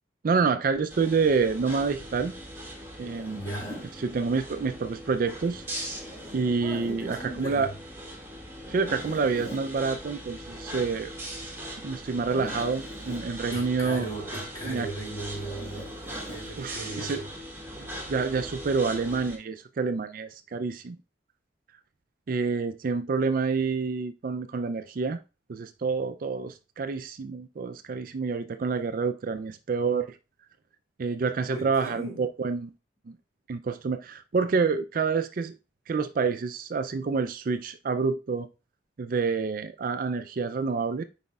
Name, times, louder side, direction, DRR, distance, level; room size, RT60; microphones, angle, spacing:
voice 1, 0.2-2.3 3.0-3.4 4.0-5.6 6.3-7.7 8.7-11.1 11.8-14.1 14.6-14.9 16.6-17.2 17.8-21.0 22.3-25.2 25.5-30.2 31.0-32.7 33.1-33.2 33.5-35.6 35.9-38.5 39.0-41.0, right 4 dB, 50° right, 0.4 m, -28 dB
sound 1, 0.9-19.4, equal, 15° right, 2.0 m, -40 dB
Zipper (clothing), 3.0-3.9 5.8-7.0 8.6-9.7 12.1-13.3 15.3-16.5, equal, 40° left, 4.2 m, -43 dB
voice 2, 3.3-3.9 6.6-7.7 13.5-16.0 16.3-17.3 31.5-32.3, right 2 dB, 20° left, 3.2 m, -37 dB
9.4 x 4.9 x 2.3 m
head